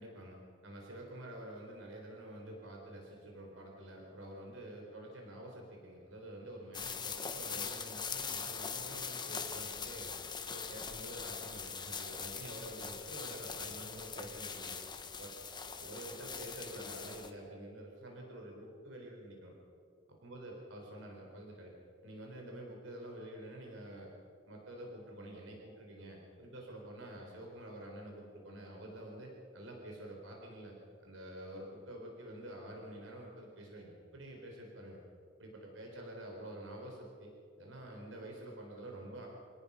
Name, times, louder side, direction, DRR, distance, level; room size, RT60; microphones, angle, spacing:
voice 1, 0.0-10.2 10.5-14.8 15.2-15.4 15.8-19.5 20.1-21.7 22.0-24.1 24.4-30.7 31.0-35.0 35.4-39.3, right 1 dB, 80° right, 0 dB, 4.2 m, -48 dB
sound 1, 6.7-17.3, left 6 dB, 25° left, 1.4 m, -42 dB
27.5 x 18.5 x 5.7 m, 2.5 s
head